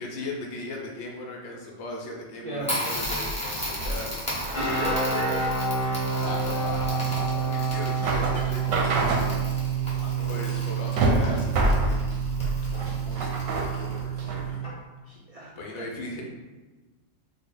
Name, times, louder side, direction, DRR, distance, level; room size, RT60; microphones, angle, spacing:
voice 1, 0.0-5.3 6.2-9.2 10.2-14.7 15.6-16.2, left 2 dB, 65° left, -1 dB, 0.9 m, -39 dB
Crackle, 2.6-14.2, equal, 5° left, 0.9 m, -36 dB
sound 1, 2.9-14.5, right 1 dB, 90° right, 1.0 m, -29 dB
sound 2, 4.5-14.7, right 5 dB, 30° left, 1.0 m, -29 dB
voice 2, 4.5-5.6 5.9-6.4 9.9-10.3 15.1-15.5, right 2 dB, 70° right, -6 dB, 0.3 m, -34 dB
3.6 x 2.0 x 3.8 m, 1.3 s
omnidirectional pair, 1.3 m